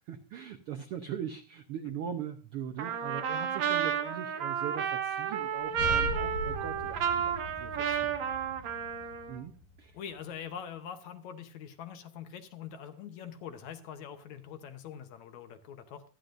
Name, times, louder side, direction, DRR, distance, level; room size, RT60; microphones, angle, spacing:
voice 1, 0.1-8.2 9.3-9.5 9.8-10.0, right 9 dB, 85° right, 6 dB, 1.2 m, -40 dB
Trumpet, 2.8-9.4, right 8 dB, 65° right, 2.2 m, -31 dB
sound 1, 5.7-10.0, equal, 90° left, 3.4 m, -40 dB
voice 2, 9.9-16.0, left 8 dB, 70° left, 8 dB, 2.1 m, -44 dB
25.5 x 9.8 x 2.6 m, 0.36 s
omnidirectional pair, 3.8 m